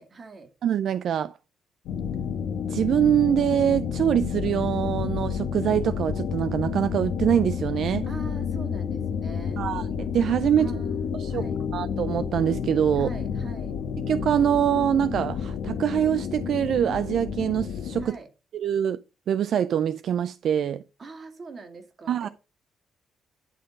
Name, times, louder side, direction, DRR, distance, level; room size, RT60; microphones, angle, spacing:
voice 1, 0.0-0.5 8.0-9.6 10.6-11.0 11.3-11.6 12.9-13.8 18.0-18.3 21.0-22.3, right 3 dB, 40° right, 2.3 m, -42 dB
voice 2, 0.6-1.3 2.7-8.1 9.6-10.7 11.1-11.4 11.7-13.1 14.1-18.2 18.5-19.0 19.3-20.8 22.1-22.3, right 9 dB, 65° right, 0.3 m, -24 dB
sound 1, 1.9-18.0, left 7 dB, 85° left, 1.2 m, -30 dB
11.0 x 3.7 x 5.1 m
cardioid pair, 90°, 0 cm